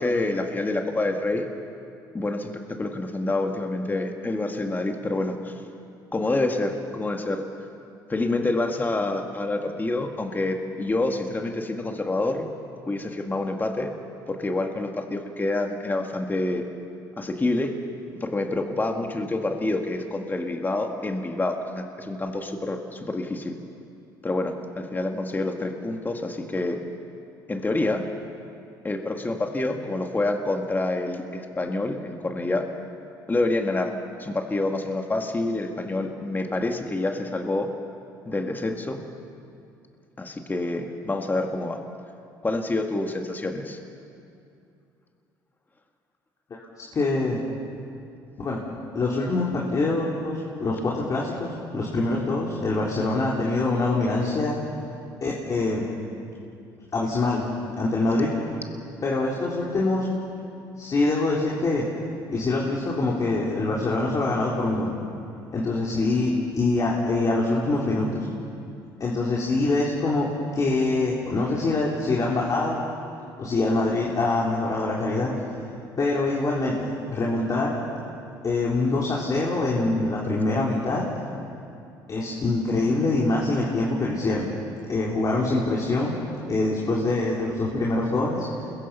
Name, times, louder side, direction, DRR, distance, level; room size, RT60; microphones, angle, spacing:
voice 1, 0.0-1.5 2.1-2.5 2.8-5.5 6.1-7.4 8.1-12.5 12.9-14.0 14.3-16.6 17.2-17.7 18.2-23.6 24.2-26.8 27.5-28.1 28.8-32.7 33.3-33.9 34.2-37.7 38.3-39.0 40.2-41.8 42.4-43.8, left 2 dB, 20° left, 3 dB, 2.1 m, -27 dB
voice 2, 46.9-47.4 48.4-48.6 48.9-54.6 55.2-55.8 56.9-57.5 57.8-58.3 59.0-60.1 60.8-61.9 62.3-64.9 65.5-68.3 69.0-70.3 70.5-72.8 73.4-75.3 76.0-77.7 78.4-81.1 82.1-84.4 84.9-86.2 86.5-88.5, left 2 dB, 40° left, -4 dB, 3.9 m, -24 dB
28.5 x 22.0 x 5.7 m, 2.5 s
supercardioid pair, 75°, 9 cm